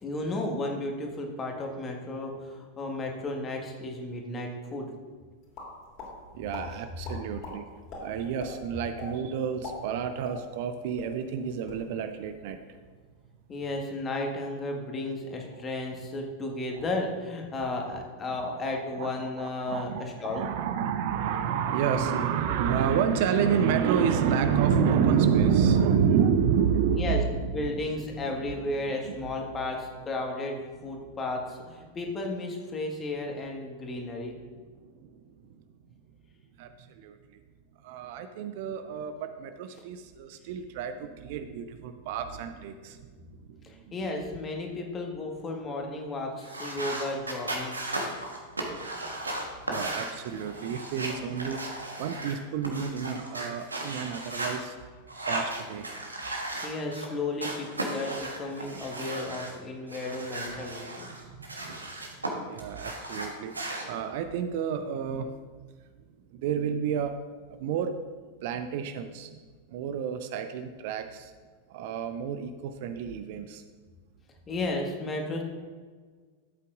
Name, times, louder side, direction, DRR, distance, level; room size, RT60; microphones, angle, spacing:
voice 1, 0.0-4.9 13.5-20.4 26.9-30.6 30.8-34.4 43.6-47.8 56.6-61.1 74.5-75.4, left 2 dB, 20° left, 1 dB, 1.7 m, -33 dB
sound 1, 5.5-6.1 6.5-6.6 7.0-7.5 7.9-8.0 8.4-8.5 9.0-9.1 9.5-10.7 11.0-11.1 11.5-11.8, left 4 dB, 40° left, 3.0 m, -40 dB
voice 2, 6.3-7.7 8.0-12.6 17.8-18.0 18.3-18.7 19.0-19.1 19.4-27.9 28.2-28.4 28.9-29.1 34.8-35.1 36.6-37.4 37.8-43.9 49.7-51.6 52.0-54.7 55.3-55.9 61.1-61.8 62.4-63.6 63.9-65.3 66.3-67.1 67.6-67.9 68.4-69.4 69.7-71.3 71.7-73.6, right 7 dB, 50° right, 9 dB, 0.5 m, -29 dB
sound 2, 46.4-54.6 55.1-57.1 57.4-59.5 59.9-62.3 62.6-63.8, right 2 dB, 80° right, 1.3 m, -36 dB
12.5 x 8.2 x 2.6 m, 1.5 s
figure-of-eight pair, 90°, 0 cm